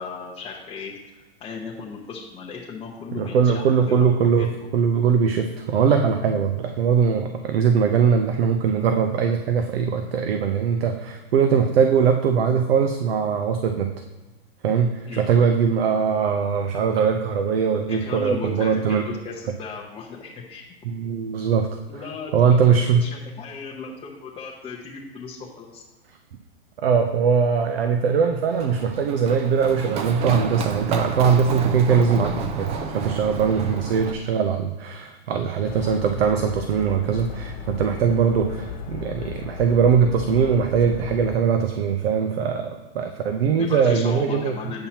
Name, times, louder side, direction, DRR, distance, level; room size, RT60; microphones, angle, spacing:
voice 1, 0.0-4.1 4.4-4.5 15.1-15.5 17.9-20.6 21.9-25.8 33.7-33.8 43.6-44.9, left 5 dB, 15° left, -4 dB, 0.8 m, -36 dB
voice 2, 3.2-13.9 14.6-19.1 20.8-21.8 22.3-23.0 26.8-44.5, right 6 dB, 75° right, 6 dB, 0.7 m, -21 dB
Run, 28.5-34.1, right 4 dB, 20° right, 0.4 m, -31 dB
sound 1, 35.6-41.4, left 8 dB, 45° left, 1.3 m, -36 dB
8.7 x 5.6 x 2.9 m, 1.2 s
hypercardioid pair, 130°, 31 cm